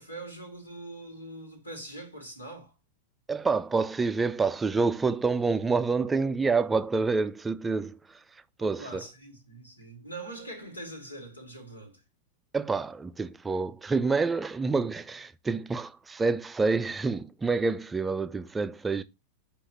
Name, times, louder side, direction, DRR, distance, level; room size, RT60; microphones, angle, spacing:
voice 1, 0.0-2.7 8.6-12.0, right 2 dB, 85° left, 1.9 m, -43 dB
voice 2, 3.3-9.0 12.5-19.0, right 4 dB, 15° right, 0.4 m, -28 dB
6.3 x 2.9 x 5.4 m
figure-of-eight pair, 90°, 0 cm